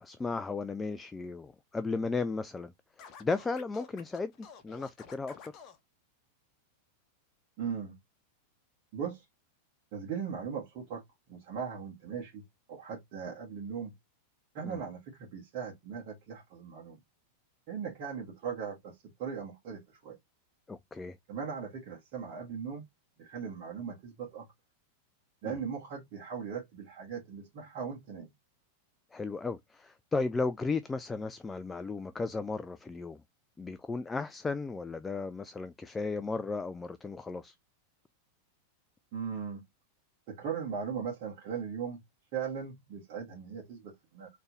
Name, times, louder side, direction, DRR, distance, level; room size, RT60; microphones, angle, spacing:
voice 1, 0.0-2.7 3.0-5.5 14.6-14.8 20.7-21.2 25.4-25.6 29.1-33.2 33.6-37.5, left 3 dB, 15° left, 0.3 m, -35 dB
Scratching (performance technique), 3.0-5.8, left 7 dB, 35° left, 1.0 m, -51 dB
voice 2, 7.6-7.9 8.9-9.2 9.9-11.0 11.3-12.4 12.7-13.9 14.5-17.0 17.7-18.9 19.2-20.2 21.3-22.8 23.2-24.5 25.4-28.3 39.1-39.6 40.3-42.0 42.3-44.3, right 6 dB, 45° right, 1.6 m, -38 dB
4.3 x 3.3 x 2.7 m
figure-of-eight pair, 90°, 0 cm